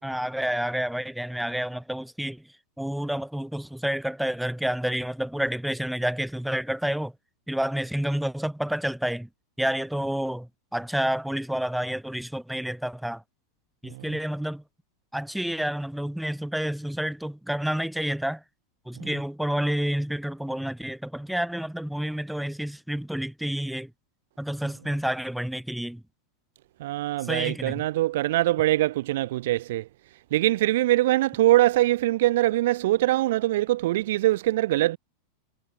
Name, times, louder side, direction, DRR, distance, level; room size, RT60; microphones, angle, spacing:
voice 1, 0.0-2.5 2.8-7.1 7.5-9.3 9.6-13.2 13.8-14.6 15.1-18.4 18.9-23.9 24.4-26.0 27.2-27.8, equal, ahead, 2.9 m, -29 dB
voice 2, 26.8-29.8 30.3-35.0, right 16 dB, 55° right, 0.6 m, -23 dB
figure-of-eight pair, 90°, 0 cm